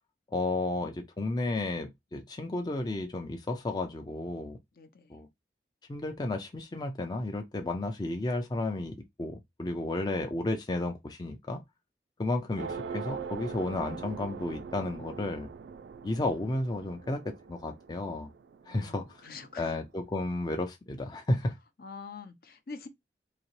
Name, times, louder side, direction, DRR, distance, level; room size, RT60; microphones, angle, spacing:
voice 1, 0.3-4.6 5.1-5.3 5.9-11.6 12.2-15.5 16.0-18.3 18.7-19.3 19.6-21.6, left 2 dB, 25° left, 0.4 m, -32 dB
voice 2, 4.7-5.2 18.7-19.7 21.8-22.9, left 4 dB, 55° left, 0.7 m, -45 dB
sound 1, 12.6-19.4, right 5 dB, 80° right, 0.3 m, -42 dB
4.0 x 2.8 x 3.0 m
head